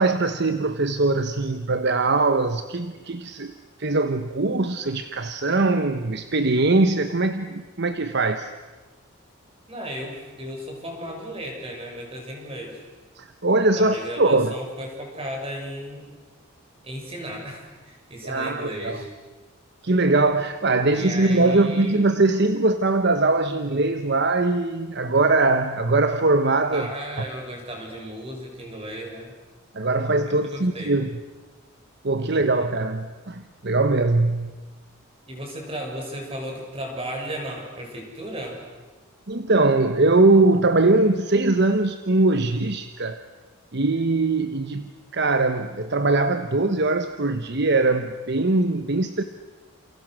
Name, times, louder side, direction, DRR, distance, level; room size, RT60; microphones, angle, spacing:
voice 1, 0.0-3.5 3.8-8.5 13.2-14.5 18.2-19.0 19.8-26.9 29.7-31.2 32.0-34.6 39.3-43.2 43.7-49.2, right 2 dB, 55° right, 9 dB, 1.1 m, -21 dB
voice 2, 9.7-12.8 13.8-16.1 16.8-19.1 20.9-22.0 26.7-29.3 30.3-30.9 32.2-32.4 35.3-38.6, equal, 30° right, 1 dB, 7.1 m, -35 dB
29.5 x 28.5 x 6.5 m, 1.3 s
head